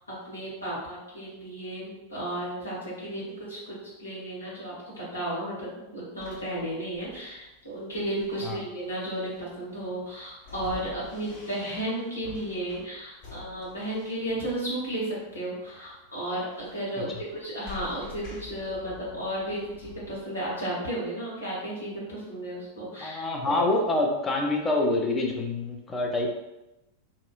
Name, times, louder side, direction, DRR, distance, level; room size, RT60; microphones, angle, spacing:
voice 1, 0.1-23.6, right 1 dB, 75° left, -8 dB, 1.2 m, -34 dB
sound 1, 6.2-20.6, left 4 dB, 45° left, 0.8 m, -48 dB
voice 2, 23.0-26.3, left 2 dB, 15° left, 0 dB, 0.5 m, -26 dB
2.8 x 2.3 x 2.3 m, 0.94 s
figure-of-eight pair, 90°, 0 cm